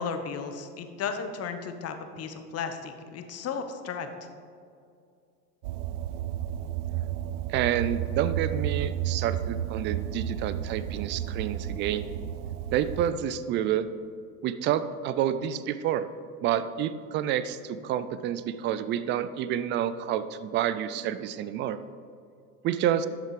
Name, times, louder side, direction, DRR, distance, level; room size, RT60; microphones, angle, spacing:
voice 1, 0.0-4.1, left 6 dB, 30° left, 7 dB, 1.1 m, -34 dB
sound 1, 5.6-13.1, right 10 dB, 70° right, 0.6 m, -32 dB
voice 2, 7.5-12.1 12.7-13.9 14.4-16.1 16.4-21.8 22.6-23.1, right 10 dB, 25° right, 13 dB, 0.3 m, -29 dB
11.5 x 6.6 x 4.9 m, 2.4 s
hypercardioid pair, 100°, 47 cm